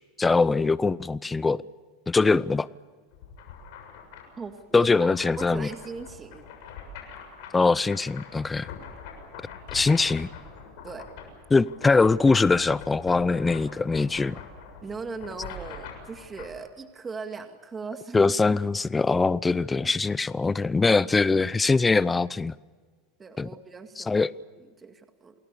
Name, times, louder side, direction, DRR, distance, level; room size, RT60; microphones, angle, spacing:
voice 1, 0.2-1.6 2.1-2.7 4.7-5.7 7.5-8.7 9.7-10.3 11.5-14.4 18.1-22.5 23.4-23.5 24.0-24.3, left 3 dB, 15° left, 0.7 m, -22 dB
sound 1, 3.1-16.5, left 5 dB, 70° left, 7.2 m, -44 dB
voice 2, 4.4-6.4 10.8-11.1 14.8-18.6 19.1-19.2 19.8-19.9 23.2-24.2 24.6-25.3, right 4 dB, 20° right, 2.1 m, -39 dB
29.0 x 19.5 x 7.0 m
supercardioid pair, 110°, 0 cm